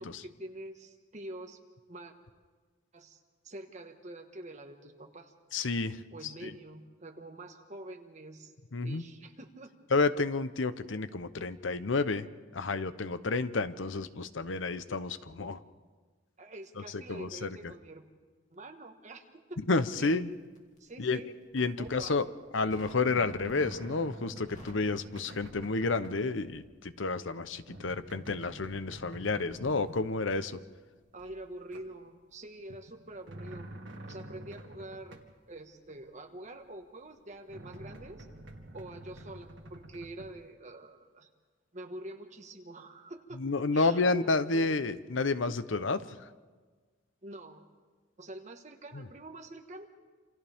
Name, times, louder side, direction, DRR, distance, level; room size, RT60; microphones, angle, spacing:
voice 1, 0.0-1.6 1.9-2.1 2.9-5.3 6.1-8.5 8.8-9.7 16.4-18.1 18.5-20.1 20.8-21.3 21.8-22.2 31.1-33.7 34.1-35.2 35.5-38.3 38.7-41.3 41.7-43.4 43.7-44.1 44.5-44.8 47.2-47.7 48.2-49.9, right 1 dB, 40° right, 4 dB, 1.6 m, -46 dB
voice 2, 5.5-6.0 6.4-6.5 8.7-9.0 9.9-12.3 12.5-15.6 16.9-17.6 19.7-20.3 21.0-21.2 21.5-22.3 22.5-30.6 43.4-46.2 48.9-49.0, left 3 dB, 75° left, 12 dB, 0.9 m, -30 dB
Crackle, 19.8-20.9 21.4-22.0 22.7-23.1 23.5-24.0 24.2-26.2 26.4-26.7, left 1 dB, 40° left, 2.7 m, -53 dB
sound 1, 21.7-22.0 22.3-26.3 26.5-26.9 27.2-30.7 31.1-32.2 32.6-35.4 35.9-36.0 36.6-36.7 37.3-40.5, right 1 dB, 70° right, 2.0 m, -48 dB
28.0 x 27.5 x 3.6 m, 1.4 s
head